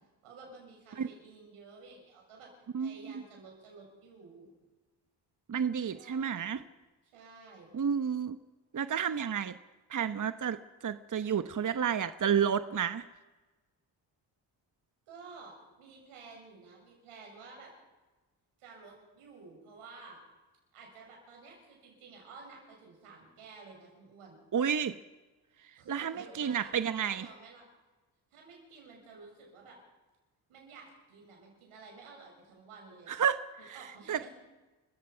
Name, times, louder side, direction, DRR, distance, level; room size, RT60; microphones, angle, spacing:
voice 1, 0.2-2.5 2.8-4.5 5.9-6.5 7.1-7.7 15.1-17.7 18.6-20.2 20.7-24.4 25.8-26.7 27.1-27.6 28.3-29.8 30.5-33.2 33.6-34.3, right 4 dB, 85° right, 0 dB, 7.2 m, -52 dB
voice 2, 2.7-3.2 5.5-6.6 7.7-8.4 8.7-9.6 9.9-13.0 24.5-25.0 25.9-27.3 33.1-34.2, right 7 dB, 40° right, 11 dB, 1.0 m, -31 dB
30.0 x 15.5 x 5.7 m, 1.2 s
supercardioid pair, 45°, 49 cm